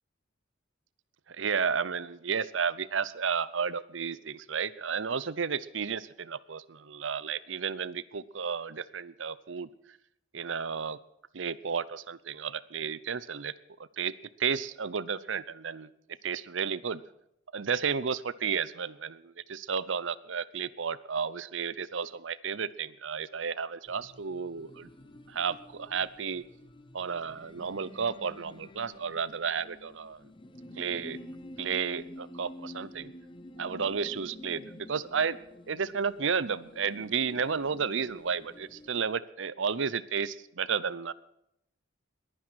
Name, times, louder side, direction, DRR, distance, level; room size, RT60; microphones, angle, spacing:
voice 1, 1.3-9.7 10.3-11.0 11.3-13.5 14.0-15.9 16.2-17.0 17.5-24.9 25.3-26.4 26.9-30.2 30.8-31.2 31.6-33.1 33.6-35.4 35.7-41.1, right 6 dB, 70° right, 19 dB, 0.7 m, -32 dB
sound 1, 23.9-39.1, left 1 dB, 25° left, 1.1 m, -49 dB
21.0 x 10.0 x 6.3 m, 0.79 s
head